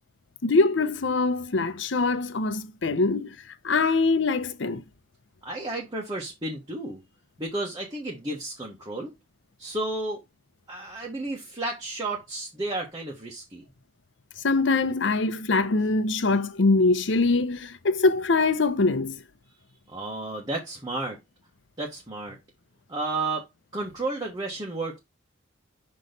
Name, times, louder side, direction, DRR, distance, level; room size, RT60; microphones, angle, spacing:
voice 1, 0.4-3.4 3.6-4.8 14.4-19.2, left 3 dB, 70° left, 0.7 m, -23 dB
voice 2, 5.4-7.0 7.4-9.1 9.6-10.2 10.7-13.6 19.9-21.2 21.8-22.4 22.9-23.4 23.7-25.0, right 2 dB, 20° right, 1.2 m, -32 dB
6.1 x 3.1 x 5.1 m
head